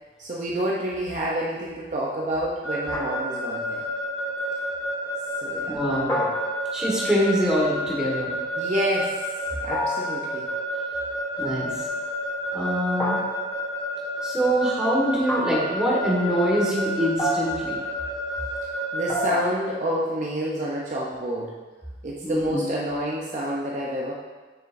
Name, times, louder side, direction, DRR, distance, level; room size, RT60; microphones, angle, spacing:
voice 1, 0.2-3.9 5.4-6.3 8.6-9.2 9.6-10.5 18.9-21.5 22.0-24.1, right 1 dB, 40° right, -3 dB, 0.6 m, -28 dB
Keyboard (musical) / Alarm, 2.6-19.2, equal, 55° left, 2.0 m, -30 dB
sound 1, 2.9-3.6 6.1-7.0 9.7-10.3 13.0-13.7 15.3-15.8 17.2-17.8 19.1-19.7, left 1 dB, 15° left, 0.7 m, -29 dB
voice 2, 5.7-6.1 6.7-8.3 11.4-11.8 12.5-13.2 14.2-17.8 22.2-22.6, equal, 5° right, -6 dB, 1.6 m, -24 dB
7.1 x 6.1 x 2.6 m, 1.3 s
head